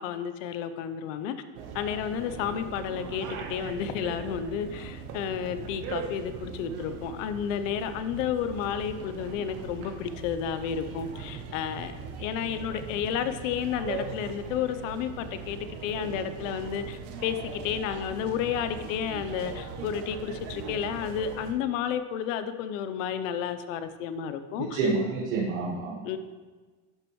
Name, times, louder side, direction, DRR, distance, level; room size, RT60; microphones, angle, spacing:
voice 1, 0.0-1.3 1.7-24.8 26.0-26.2, left 8 dB, 65° left, 11 dB, 0.8 m, -31 dB
sound 1, 1.5-21.5, right 5 dB, 50° right, 1.0 m, -40 dB
voice 2, 24.6-26.2, right 3 dB, 80° right, -5 dB, 1.8 m, -29 dB
11.5 x 6.5 x 3.1 m, 1.3 s
supercardioid pair, 165°, 41 cm